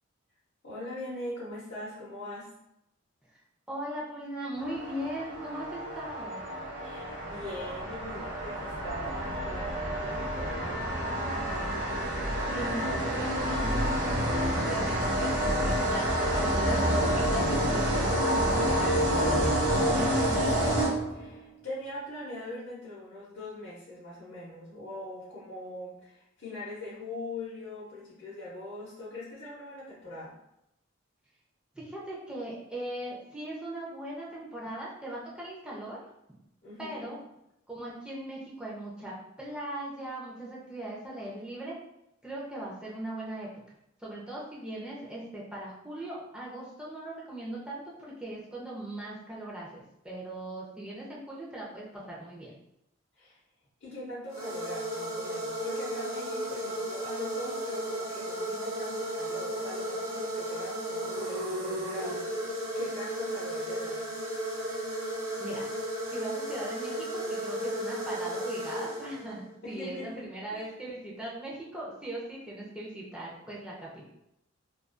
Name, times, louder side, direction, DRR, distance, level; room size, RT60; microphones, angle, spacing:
voice 1, 0.6-2.5 6.8-11.1 21.1-30.3 36.6-37.2 53.2-53.4 53.8-64.0 69.6-70.7, left 1 dB, 55° left, -9 dB, 0.7 m, -42 dB
voice 2, 3.7-6.4 12.5-12.8 13.1-20.6 31.7-36.0 36.8-37.2 37.7-41.8 42.2-43.5 44.0-52.5 65.4-65.6 66.1-74.0, right 1 dB, 5° right, -6 dB, 0.5 m, -39 dB
sound 1, 4.6-21.4, equal, 40° right, 0.7 m, -28 dB
sound 2, 54.3-69.5, right 1 dB, 75° right, 0.8 m, -34 dB
2.4 x 2.3 x 2.4 m, 0.82 s
head